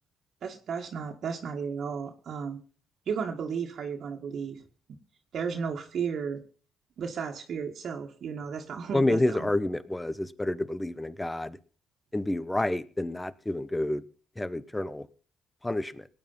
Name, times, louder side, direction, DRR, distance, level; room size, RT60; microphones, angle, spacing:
voice 1, 0.4-2.6 3.1-4.6 5.3-6.4 7.0-9.5, right 6 dB, 60° right, 2 dB, 1.9 m, -34 dB
voice 2, 8.9-11.6 12.1-14.0 14.4-15.1 15.6-16.1, left 1 dB, 10° left, 16 dB, 1.1 m, -29 dB
18.5 x 9.6 x 5.6 m, 0.41 s
cardioid pair, 90°, 0 cm